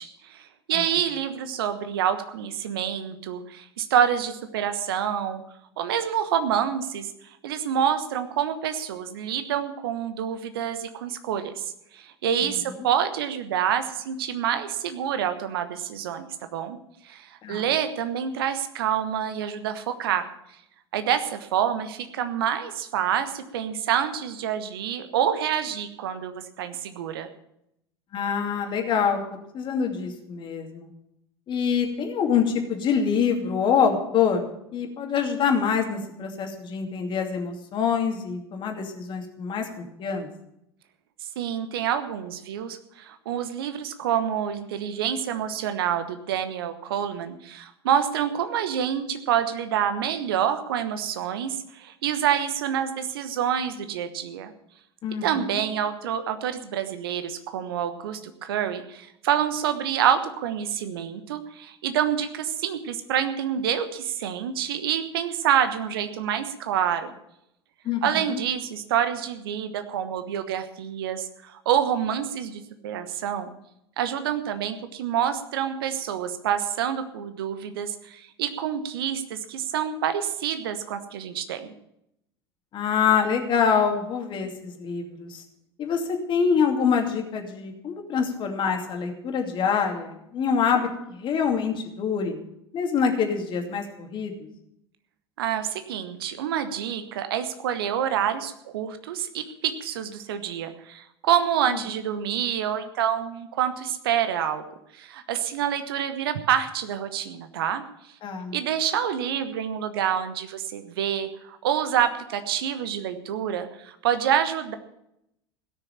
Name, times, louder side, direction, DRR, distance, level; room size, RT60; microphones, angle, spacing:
voice 1, 0.0-5.4 5.8-7.1 7.4-16.8 17.0-20.3 20.9-27.3 41.4-54.5 55.2-67.1 68.0-73.5 74.0-81.7 95.4-104.6 104.9-107.8 108.5-114.7, right 9 dB, 65° right, 10 dB, 1.2 m, -27 dB
voice 2, 28.1-29.2 29.5-30.9 31.5-34.4 34.7-40.3 55.0-55.6 67.8-68.4 82.7-85.4 85.8-92.4 92.7-94.3 101.7-101.8 108.2-108.6, left 6 dB, 35° left, 4 dB, 2.5 m, -25 dB
17.0 x 6.7 x 8.7 m, 0.80 s
figure-of-eight pair, 70°, 13 cm